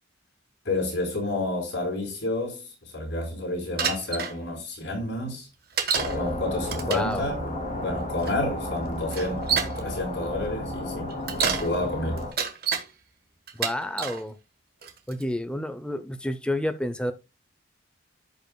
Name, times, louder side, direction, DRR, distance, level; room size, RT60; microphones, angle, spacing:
voice 1, 0.6-5.5 6.1-11.1 11.4-12.2, left 2 dB, 60° left, 4.1 m, -30 dB
Bicycle, 3.8-4.3 5.8-6.2 6.6-7.1 8.2-8.3 9.1-9.8 11.1-11.7 12.2-12.9 13.5-14.2 14.8-15.2, right 6 dB, 50° right, 1.2 m, -28 dB
sound 1, 5.9-12.3, left 1 dB, 35° left, 2.5 m, -33 dB
voice 2, 6.9-7.2 13.6-14.4 15.1-17.1, left 1 dB, 5° left, 0.5 m, -29 dB
15.0 x 5.3 x 2.2 m
head